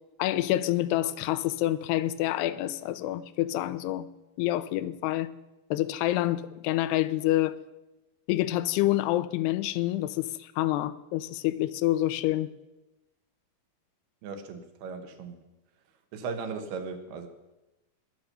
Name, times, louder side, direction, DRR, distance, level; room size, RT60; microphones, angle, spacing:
voice 1, 0.2-4.1 4.4-5.3 5.7-7.6 8.3-12.5, left 15 dB, 85° left, 2.6 m, -27 dB
voice 2, 14.2-15.4 16.1-17.3, right 5 dB, 75° right, 3.1 m, -37 dB
20.0 x 6.8 x 6.8 m
omnidirectional pair, 4.7 m